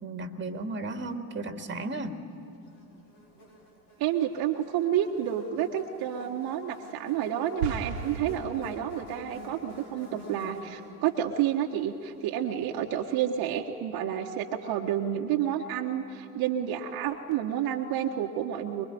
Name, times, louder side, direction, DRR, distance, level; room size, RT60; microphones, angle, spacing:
voice 1, 0.0-2.2, right 2 dB, 25° right, 7 dB, 2.0 m, -34 dB
Buzz, 2.6-13.1, left 1 dB, 85° left, 5.3 m, -50 dB
voice 2, 4.0-18.9, right 10 dB, 50° right, 2 dB, 1.5 m, -30 dB
sound 1, 7.6-9.2, right 5 dB, 75° right, 1.6 m, -35 dB
24.5 x 22.5 x 9.4 m, 2.8 s
figure-of-eight pair, 70°, 46 cm